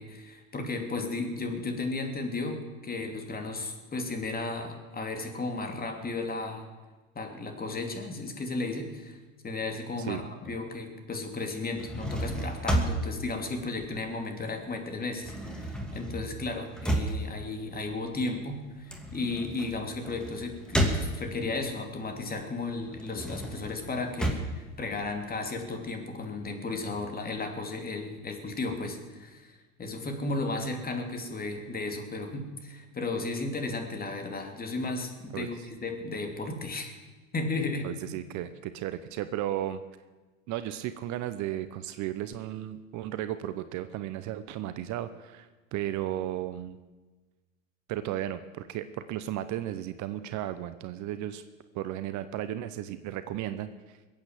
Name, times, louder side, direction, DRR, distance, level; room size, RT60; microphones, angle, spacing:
voice 1, 0.0-6.7 7.1-9.2 9.4-37.0 37.3-37.9, left 3 dB, 20° left, 4 dB, 2.9 m, -34 dB
sound 1, 11.6-14.5 14.8-21.6 22.0-25.6, right 1 dB, ahead, 2.6 m, -32 dB
voice 2, 37.8-39.8 40.5-46.8 47.9-51.4 51.7-54.0, right 12 dB, 45° right, 12 dB, 0.9 m, -34 dB
21.5 x 8.8 x 7.5 m, 1.3 s
hypercardioid pair, 95°, 40 cm